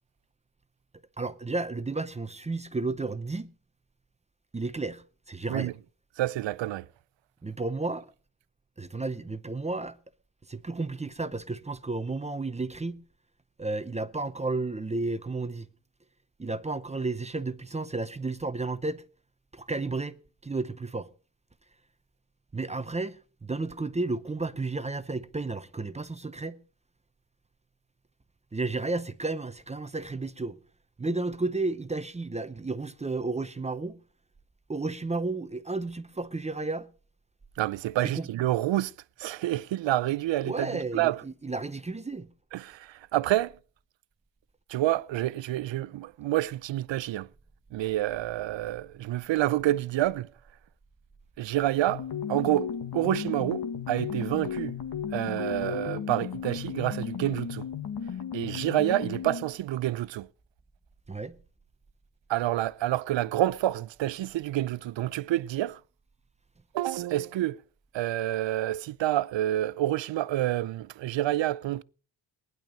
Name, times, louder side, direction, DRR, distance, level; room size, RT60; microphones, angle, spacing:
voice 1, 1.2-3.5 4.5-5.7 7.4-8.1 8.8-10.0 10.5-13.0 13.6-15.7 16.4-19.0 19.5-20.2 20.4-21.1 22.5-26.6 28.5-30.6 31.0-34.0 34.7-36.9 38.0-38.3 40.4-42.3 61.1-61.4, right 3 dB, 15° right, 0.7 m, -32 dB
voice 2, 6.2-6.8 37.6-38.9 39.2-40.7 40.9-41.2 42.5-43.6 44.7-47.3 47.7-50.3 51.4-52.0 52.3-54.7 55.1-57.7 58.3-60.3 62.3-65.8 66.7-67.6 67.9-71.8, right 14 dB, 75° right, 0.6 m, -28 dB
sound 1, 51.9-59.5, left 7 dB, 50° left, 1.7 m, -35 dB
19.0 x 10.5 x 5.3 m
wide cardioid pair, 140°, 46 cm